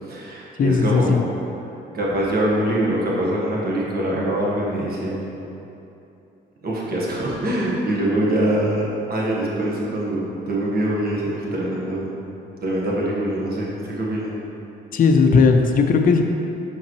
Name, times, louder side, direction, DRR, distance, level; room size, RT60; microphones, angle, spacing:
voice 1, 0.1-1.2 1.9-5.3 6.6-12.2 12.6-14.3, right 1 dB, 50° right, -4 dB, 1.3 m, -24 dB
voice 2, 0.6-1.2 14.9-16.2, left 4 dB, 45° left, 4 dB, 0.5 m, -16 dB
5.9 x 5.7 x 3.0 m, 2.9 s
cardioid pair, 90°, 20 cm